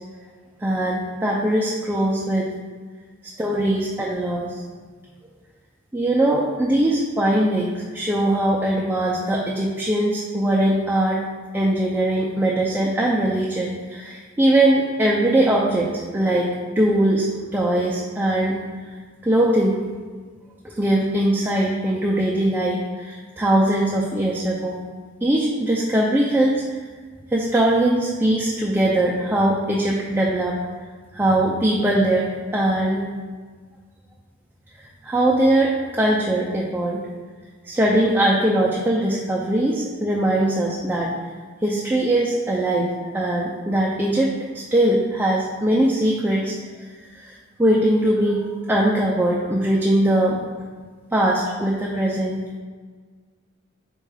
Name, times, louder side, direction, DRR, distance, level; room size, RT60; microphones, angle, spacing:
voice 1, 0.6-2.5 3.4-4.6 5.9-11.2 11.5-18.6 19.2-19.8 20.6-24.8 25.2-26.6 27.3-30.6 31.1-33.0 35.0-37.0 37.6-41.1 41.6-44.3 44.5-46.5 47.2-50.4 51.1-52.4, right 1 dB, 10° right, -4 dB, 0.3 m, -21 dB
4.5 x 2.3 x 4.8 m, 1.5 s
head